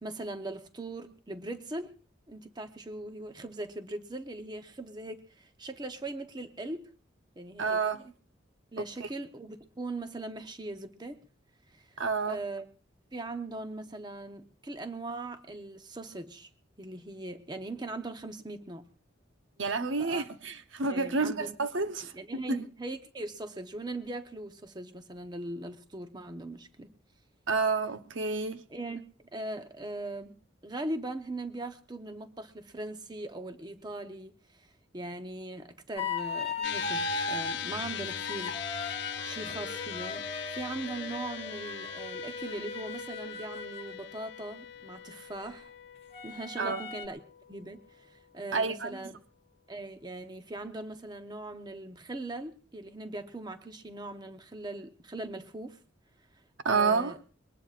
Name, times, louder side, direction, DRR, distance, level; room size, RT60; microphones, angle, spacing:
voice 1, 0.0-1.9 2.3-6.9 7.4-7.8 8.7-11.2 11.8-11.9 12.3-12.7 13.1-16.5 16.8-18.8 20.0-20.2 20.9-21.5 22.1-26.9 28.7-30.3 30.6-34.7 34.9-38.6 39.2-40.2 40.5-45.7 46.2-47.2 47.5-49.1 49.7-55.8 56.7-57.2, right 2 dB, 20° right, 0.9 m, -40 dB
voice 2, 7.6-8.0 9.0-9.1 12.0-12.4 19.6-22.7 27.5-28.6 46.6-46.8 48.5-49.0 56.6-57.2, right 4 dB, 75° right, 0.9 m, -29 dB
sound 1, 36.0-37.6 38.1-44.0 46.1-47.1, left 3 dB, 30° left, 1.6 m, -38 dB
sound 2, 36.6-49.2, left 8 dB, 60° left, 0.9 m, -41 dB
22.0 x 19.0 x 2.5 m
head